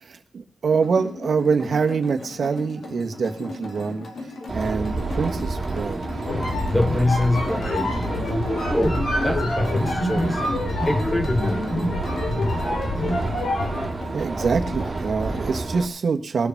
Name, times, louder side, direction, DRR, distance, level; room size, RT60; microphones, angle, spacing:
voice 1, 0.0-4.1 4.5-6.0 14.1-16.5, right 5 dB, 55° right, 1.5 m, -25 dB
sound 1, 0.7-15.5, left 2 dB, 55° left, 2.2 m, -38 dB
sound 2, 4.5-15.9, right 3 dB, 25° right, 2.5 m, -30 dB
sound 3, 6.2-14.0, left 1 dB, 70° left, 4.6 m, -26 dB
voice 2, 6.7-8.1 8.7-10.4 10.9-11.7, left 1 dB, 5° left, 0.5 m, -24 dB
20.5 x 6.9 x 5.9 m
wide cardioid pair, 175°, 0 cm